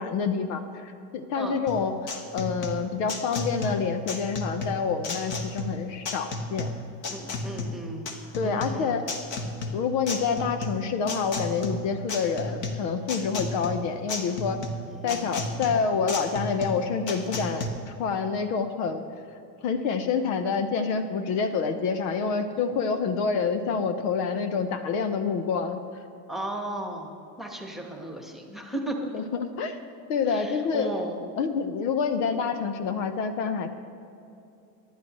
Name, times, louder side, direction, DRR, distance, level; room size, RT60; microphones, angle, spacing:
voice 1, 0.0-6.7 8.3-9.0 9.7-14.6 15.0-19.0 19.6-25.8 29.1-29.8 30.1-30.9 31.4-33.7, left 5 dB, 55° left, 8 dB, 1.1 m, -27 dB
sound 1, 1.7-17.7, left 2 dB, 35° left, 1.7 m, -33 dB
voice 2, 7.1-8.1 8.4-9.0 14.9-15.5 26.3-29.1 30.3-31.2, right 1 dB, ahead, 1 dB, 1.5 m, -35 dB
25.0 x 11.5 x 3.2 m, 2.7 s
supercardioid pair, 135°, 50 cm